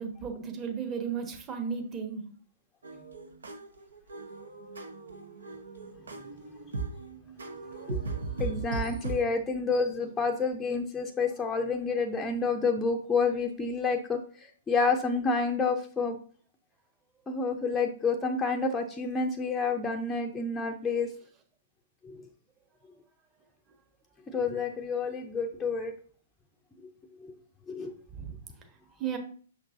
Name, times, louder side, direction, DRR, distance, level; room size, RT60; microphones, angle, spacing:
voice 1, 0.0-2.3 28.1-28.3 29.0-29.2, right 6 dB, 20° right, 4 dB, 1.2 m, -34 dB
sound 1, 2.8-9.2, right 4 dB, 70° right, 1.0 m, -38 dB
voice 2, 8.4-16.2 17.3-21.1 22.0-22.2 24.3-25.9 27.2-27.3 27.7-27.9, left 4 dB, 10° left, 2 dB, 0.6 m, -29 dB
6.3 x 5.9 x 2.7 m, 0.43 s
figure-of-eight pair, 115°, 0 cm